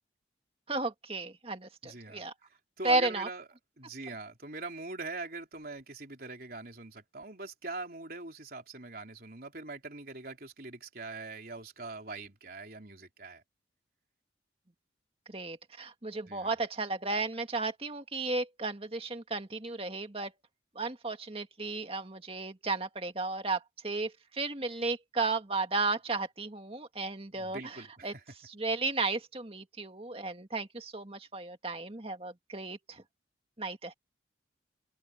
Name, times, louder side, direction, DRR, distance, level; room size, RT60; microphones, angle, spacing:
voice 1, 0.7-2.3 2.8-3.3 15.3-20.3 20.8-28.1 28.4-33.0 33.6-33.9, right 3 dB, 30° right, 1.9 m, -34 dB
voice 2, 1.8-2.3 2.8-3.5 3.8-13.4 16.3-16.6 27.3-28.2, right 3 dB, 50° right, 4.0 m, -42 dB
head